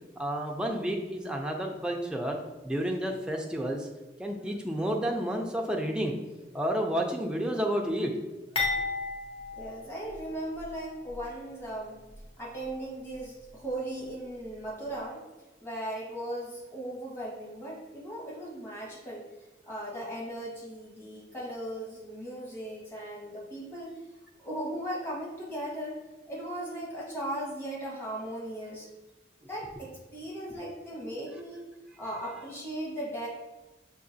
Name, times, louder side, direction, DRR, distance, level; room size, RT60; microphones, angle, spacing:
voice 1, 0.2-2.4 2.6-3.9 4.2-6.1 6.5-8.1, equal, 5° right, 1 dB, 0.4 m, -30 dB
sound 1, 8.5-10.7 11.1-11.2 12.1-12.2, left 3 dB, 30° left, 0.8 m, -33 dB
voice 2, 9.6-12.0 12.4-15.2 15.6-19.2 19.6-23.9 24.4-26.0 26.3-28.9 29.4-31.6 32.0-33.3, right 1 dB, 15° left, -5 dB, 1.2 m, -37 dB
5.8 x 2.8 x 2.7 m, 1.1 s
head